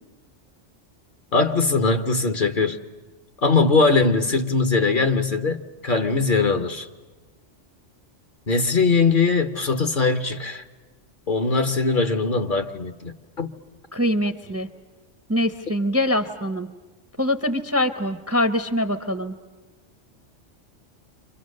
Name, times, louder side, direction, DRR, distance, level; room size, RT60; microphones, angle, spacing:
voice 1, 1.3-2.8 3.4-6.9 8.5-10.6 11.3-13.5, left 4 dB, 45° left, 1.1 m, -21 dB
voice 2, 13.9-14.7 15.3-16.7 17.2-19.3, left 1 dB, 15° right, 0.7 m, -23 dB
30.0 x 25.0 x 6.5 m
omnidirectional pair, 1.2 m